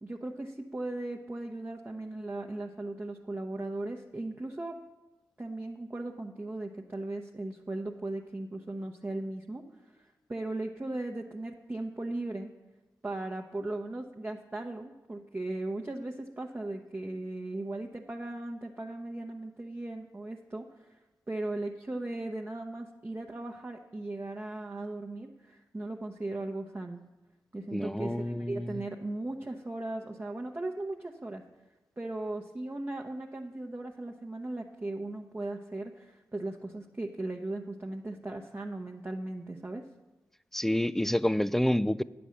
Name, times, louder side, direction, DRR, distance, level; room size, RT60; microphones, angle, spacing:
voice 1, 0.0-4.8 5.4-12.5 13.0-27.0 27.5-31.4 32.0-39.8, right 2 dB, 25° right, 2 dB, 0.8 m, -37 dB
voice 2, 27.7-28.8 40.5-42.0, left 1 dB, 5° left, 17 dB, 0.3 m, -28 dB
9.0 x 7.0 x 6.3 m, 1.1 s
supercardioid pair, 40°, 7 cm